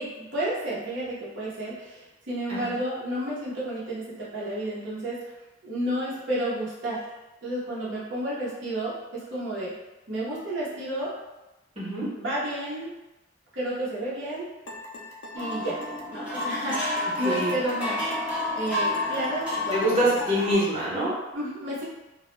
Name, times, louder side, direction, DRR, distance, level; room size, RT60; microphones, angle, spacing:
voice 1, 0.0-5.2 5.6-7.1 7.4-9.7 10.1-11.1 12.2-12.9 13.5-14.5 15.3-15.8 16.1-18.0 18.5-20.2 21.3-21.8, right 1 dB, 70° right, -8 dB, 0.7 m, -31 dB
voice 2, 11.8-12.1 17.2-17.5 19.7-21.1, equal, 30° right, -9 dB, 0.9 m, -25 dB
sound 1, 14.7-20.7, left 2 dB, 75° left, 0.4 m, -40 dB
sound 2, 15.4-20.5, left 1 dB, 5° right, 0.5 m, -30 dB
2.2 x 2.0 x 3.0 m, 1.0 s
head